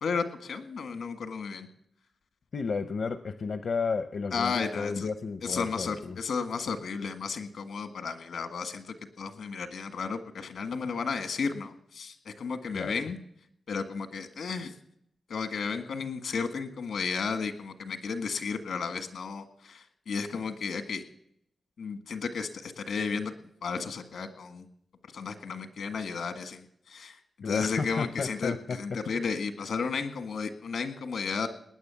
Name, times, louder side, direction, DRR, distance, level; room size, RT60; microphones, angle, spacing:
voice 1, 0.0-1.7 4.3-5.1 5.4-13.2 13.7-14.7 15.3-21.0 21.8-24.6 25.1-27.2 27.4-31.5, left 5 dB, 85° left, 8 dB, 1.7 m, -33 dB
voice 2, 2.5-6.2 12.7-12.9 27.4-28.8, left 4 dB, 60° left, 10 dB, 0.7 m, -32 dB
19.5 x 9.6 x 7.0 m, 0.72 s
wide cardioid pair, 120°, 0 cm